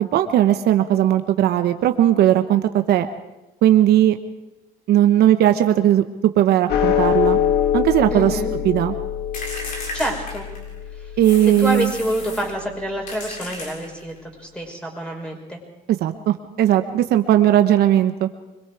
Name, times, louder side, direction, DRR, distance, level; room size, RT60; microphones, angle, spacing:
voice 1, 0.0-3.1 3.6-4.2 4.9-6.0 6.4-7.4 7.7-8.4 8.6-8.9 11.2-11.9 16.0-18.3, right 12 dB, 70° right, 8 dB, 1.0 m, -17 dB
sound 1, 6.7-13.2, left 9 dB, 75° left, 1.8 m, -24 dB
voice 2, 8.1-8.5 9.9-10.4 11.0-11.1 11.6-14.1 14.4-15.6, equal, 5° left, 1 dB, 5.6 m, -27 dB
sound 2, 9.3-10.8 11.2-12.5 13.1-14.2, left 2 dB, 55° left, 6.9 m, -34 dB
25.5 x 22.0 x 4.8 m, 1.0 s
cardioid pair, 110°, 17 cm